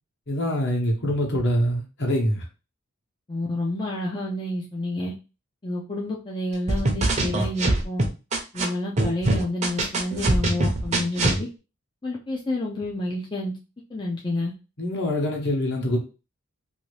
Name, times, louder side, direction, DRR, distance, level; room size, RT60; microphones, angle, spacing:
voice 1, 0.3-2.4 14.8-16.0, equal, 55° left, 1.1 m, -24 dB
voice 2, 3.3-5.1 5.6-8.0 8.5-11.5 12.0-13.5 13.9-14.5, left 1 dB, 20° left, 0.5 m, -29 dB
sound 1, 6.7-8.6 9.0-11.4, right 2 dB, 30° right, 0.6 m, -22 dB
2.7 x 2.6 x 3.2 m
head